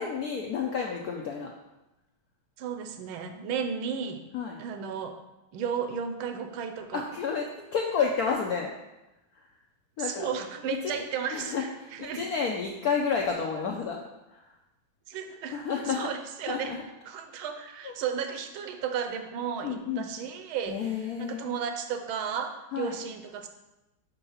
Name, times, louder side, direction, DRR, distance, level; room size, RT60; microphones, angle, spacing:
voice 1, 0.0-1.5 4.3-4.6 6.9-7.4 7.7-8.7 10.0-10.3 10.7-11.0 11.3-14.0 14.3-14.4 15.5-16.1 16.5-16.8 17.8-17.9 19.6-20.1 20.7-21.6 22.7-22.9, left 6 dB, 75° left, 1 dB, 0.8 m, -30 dB
voice 2, 2.6-4.2 4.6-5.2 5.5-7.0 10.0-12.3 15.1-16.8 17.1-23.5, right 7 dB, 80° right, 7 dB, 1.5 m, -34 dB
5.4 x 4.5 x 5.5 m, 0.98 s
omnidirectional pair, 2.3 m